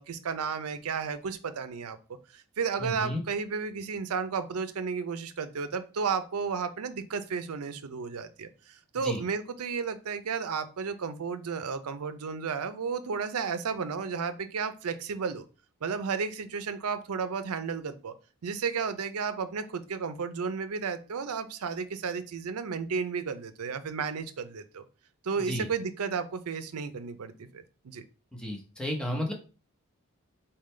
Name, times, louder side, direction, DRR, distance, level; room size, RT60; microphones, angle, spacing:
voice 1, 0.0-2.0 2.3-15.5 15.8-18.1 18.4-24.8 25.2-28.0, right 5 dB, 85° right, 11 dB, 0.5 m, -33 dB
voice 2, 2.8-3.2 9.0-9.2 25.5-25.7 28.3-29.3, left 1 dB, 5° left, -1 dB, 0.9 m, -32 dB
4.2 x 3.8 x 3.2 m, 0.35 s
head